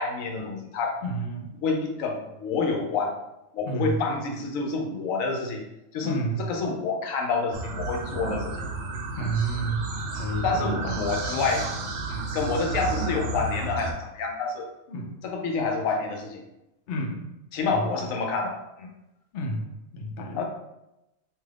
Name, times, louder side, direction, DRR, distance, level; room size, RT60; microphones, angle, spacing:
voice 1, 0.0-1.0 1.6-3.2 3.5-5.6 5.9-6.2 6.5-8.7 9.2-9.3 10.4-11.7 12.1-14.7 15.2-16.4 17.5-18.9 20.3-20.4, left 4 dB, 75° left, 2 dB, 1.0 m, -28 dB
voice 2, 1.0-1.5 3.7-4.0 6.0-6.5 9.2-11.1 14.9-15.2 16.9-17.2 17.7-18.1 19.3-19.7 19.9-20.4, right 2 dB, 60° left, 1 dB, 0.6 m, -30 dB
sound 1, 7.5-13.9, right 3 dB, 85° right, 1.0 m, -31 dB
2.6 x 2.4 x 3.2 m, 0.91 s
omnidirectional pair, 1.4 m